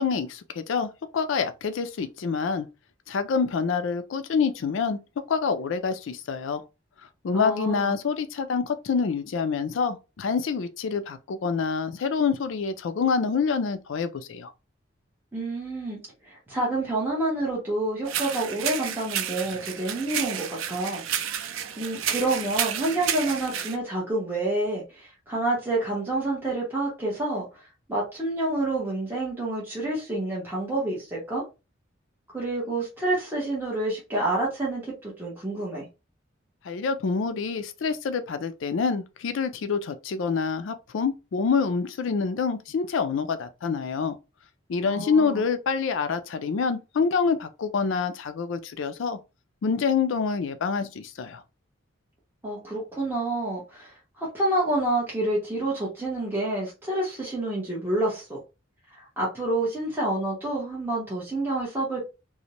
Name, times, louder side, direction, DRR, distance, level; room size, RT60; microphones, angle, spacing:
voice 1, 0.0-2.7 3.1-5.0 5.3-6.6 7.2-14.5 36.6-44.2 44.7-49.2 49.6-51.4, left 5 dB, 70° left, 0.4 m, -26 dB
voice 2, 7.3-7.9 15.3-16.0 16.3-21.4 21.8-27.5 27.9-31.4 32.3-35.9 44.8-45.4 52.4-58.4 59.0-62.1, right 2 dB, 10° right, 0.8 m, -28 dB
sound 1, 18.1-23.8, right 9 dB, 85° right, 0.4 m, -31 dB
2.5 x 2.0 x 2.9 m
head